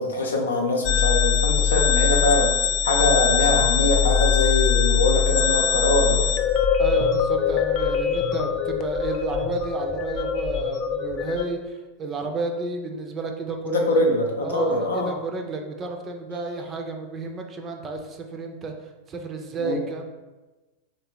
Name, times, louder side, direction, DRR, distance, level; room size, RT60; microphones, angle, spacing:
voice 1, 0.0-2.5 2.8-6.3 13.7-15.1 19.6-19.8, left 2 dB, 70° left, 1 dB, 0.7 m, -23 dB
sound 1, 0.8-11.5, left 7 dB, 35° left, 0.3 m, -22 dB
voice 2, 6.8-14.0 14.4-18.7 19.1-20.0, right 3 dB, 25° right, 4 dB, 0.5 m, -31 dB
3.2 x 3.0 x 4.3 m, 1.2 s
figure-of-eight pair, 90°, 0 cm